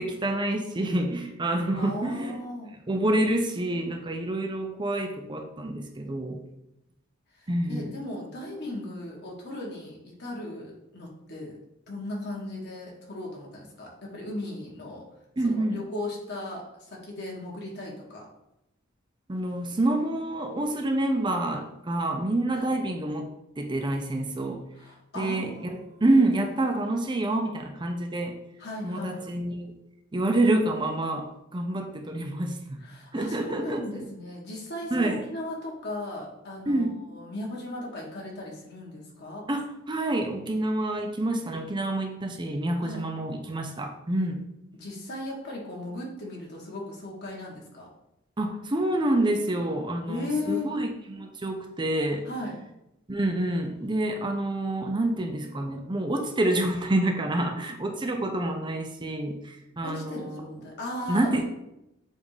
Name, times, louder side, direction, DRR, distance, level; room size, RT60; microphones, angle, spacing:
voice 1, 0.0-2.4 2.9-6.4 7.5-8.0 15.4-15.8 19.3-23.3 23.6-24.6 25.2-28.4 28.8-29.7 30.1-31.3 31.5-32.8 33.1-34.1 34.9-35.2 36.7-37.0 39.5-44.4 48.4-52.3 53.1-60.6 61.1-61.4, right 1 dB, 25° right, 3 dB, 0.6 m, -27 dB
voice 2, 1.7-2.7 7.4-11.6 11.9-15.0 15.4-18.3 22.5-22.7 24.8-26.1 28.6-29.2 32.8-39.4 42.8-43.1 44.7-47.9 50.1-50.7 52.2-52.5 59.8-61.4, left 2 dB, 55° left, -2 dB, 1.7 m, -37 dB
7.3 x 2.6 x 4.9 m, 0.85 s
head